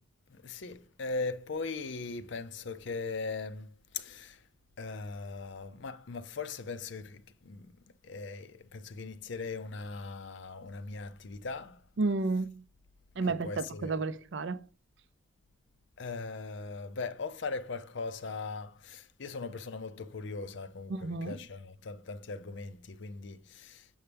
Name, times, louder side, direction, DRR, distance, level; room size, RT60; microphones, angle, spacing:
voice 1, 0.3-3.7 3.9-4.4 4.8-7.7 8.0-11.8 13.4-13.9 16.0-23.9, left 4 dB, 60° left, 0.5 m, -39 dB
voice 2, 12.0-12.6 13.2-14.7 20.9-21.4, right 3 dB, 55° right, 0.5 m, -32 dB
6.8 x 5.5 x 3.4 m
head